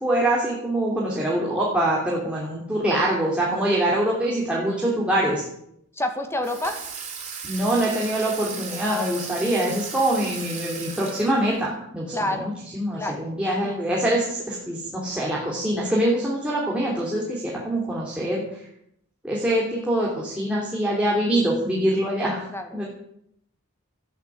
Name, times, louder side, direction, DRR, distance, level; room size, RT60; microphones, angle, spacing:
voice 1, 0.0-5.4 7.4-18.4 19.2-22.4 22.7-22.8, right 1 dB, 5° right, -5 dB, 3.2 m, -24 dB
voice 2, 6.0-6.8 8.7-9.1 12.1-12.5 12.9-13.2 13.6-13.8 22.5-22.7, left 1 dB, 10° left, 5 dB, 2.0 m, -28 dB
Water tap faucet / Sink (filling or washing), 6.4-11.7, right 6 dB, 30° right, 5.0 m, -36 dB
13.5 x 10.5 x 8.5 m, 0.74 s
head